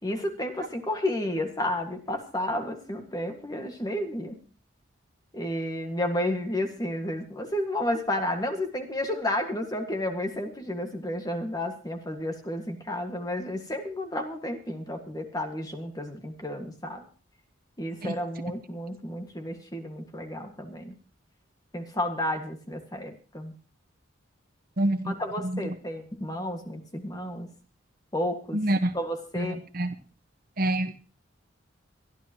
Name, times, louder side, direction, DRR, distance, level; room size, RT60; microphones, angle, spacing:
voice 1, 0.0-4.4 5.3-17.0 17.8-20.9 21.7-23.5 25.0-27.5 28.1-28.6 28.9-29.6, left 1 dB, 20° left, 5 dB, 1.7 m, -31 dB
voice 2, 24.8-25.1 25.4-25.7 28.5-28.9 29.3-29.9 30.6-30.9, right 1 dB, 45° right, 9 dB, 1.1 m, -27 dB
23.5 x 11.5 x 2.9 m, 0.36 s
head